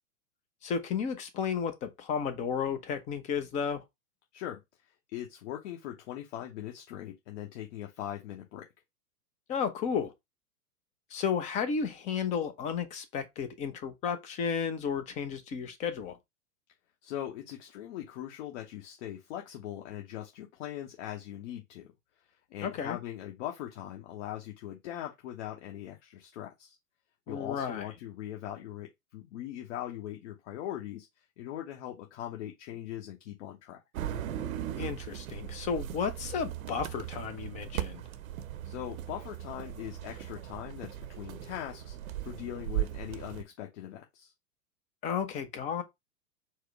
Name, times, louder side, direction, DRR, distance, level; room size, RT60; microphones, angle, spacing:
voice 1, 0.6-3.8 9.5-10.1 11.1-16.2 22.6-23.0 27.3-27.9 34.8-38.0 45.0-45.8, left 6 dB, 15° left, 0.4 m, -33 dB
voice 2, 4.3-8.7 17.0-21.9 22.5-26.8 27.3-33.8 38.6-44.3, left 12 dB, 50° left, 1.0 m, -41 dB
sound 1, 33.9-43.4, right 12 dB, 60° right, 0.7 m, -38 dB
4.7 x 2.1 x 4.5 m
hypercardioid pair, 105°, 46 cm